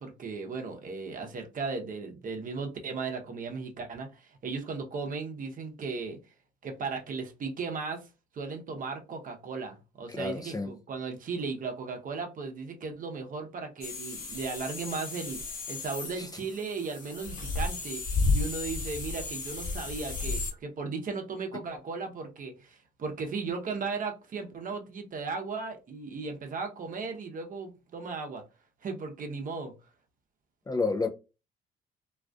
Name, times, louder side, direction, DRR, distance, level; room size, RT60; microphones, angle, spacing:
voice 1, 0.0-6.2 6.6-8.1 8.3-15.4 15.7-18.0 18.3-28.4 28.8-29.7, right 4 dB, 45° right, 0.7 m, -36 dB
voice 2, 10.1-10.7 16.2-16.3 30.7-31.1, left 4 dB, 20° left, 0.4 m, -30 dB
sound 1, 13.8-20.5, left 3 dB, 45° left, 1.0 m, -33 dB
2.3 x 2.3 x 2.3 m
hypercardioid pair, 50°, 20 cm